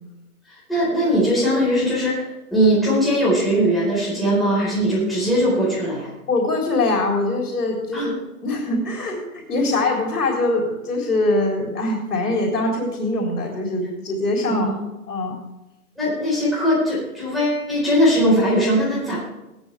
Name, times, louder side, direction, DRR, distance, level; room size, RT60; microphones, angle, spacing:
voice 1, 0.7-2.2 2.5-6.1 7.9-8.1 14.5-14.7 16.0-19.2, equal, ahead, -9 dB, 4.3 m, -20 dB
voice 2, 6.3-14.7 15.1-15.3, left 2 dB, 90° left, 0 dB, 3.6 m, -23 dB
16.0 x 13.0 x 3.4 m, 0.99 s
hypercardioid pair, 170°, 45 cm